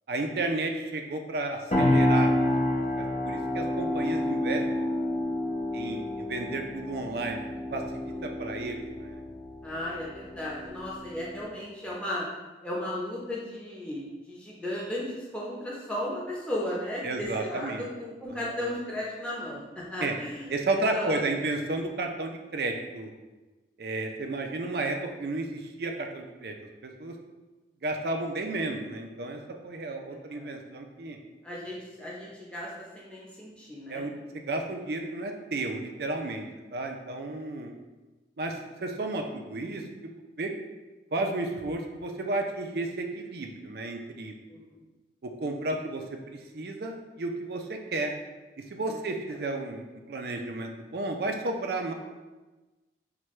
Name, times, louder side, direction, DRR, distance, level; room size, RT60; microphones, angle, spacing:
voice 1, 0.1-2.3 2.7-4.9 5.7-7.4 7.7-9.2 17.0-17.9 18.3-18.6 20.0-20.1 20.5-23.1 23.8-26.5 26.8-27.1 27.8-31.2 33.9-37.7 38.4-40.1 40.4-40.5 41.1-44.3 45.2-48.1 48.7-51.9, right 2 dB, 60° right, 3 dB, 0.5 m, -32 dB
sound 1, 1.7-11.4, left 1 dB, 40° left, 0.8 m, -29 dB
voice 2, 8.1-8.5 9.6-12.3 12.6-21.4 29.9-30.5 31.4-34.0 37.3-37.5 44.5-44.8 48.9-49.0, left 1 dB, 5° left, -6 dB, 0.7 m, -35 dB
5.8 x 2.2 x 3.1 m, 1.2 s
head